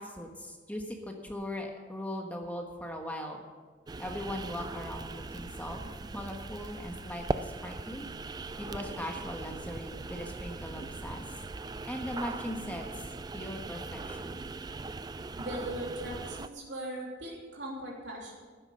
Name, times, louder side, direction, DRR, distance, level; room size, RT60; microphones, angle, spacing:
voice 1, 0.0-3.4 4.0-5.8 6.1-8.1 8.6-11.2 11.8-13.0 13.3-14.4, left 1 dB, 10° left, 2 dB, 1.3 m, -39 dB
sound 1, 3.9-16.5, right 3 dB, 20° right, 0.3 m, -40 dB
voice 2, 15.4-18.4, right 1 dB, 75° right, -3 dB, 3.0 m, -39 dB
12.5 x 9.9 x 6.4 m, 1.5 s
head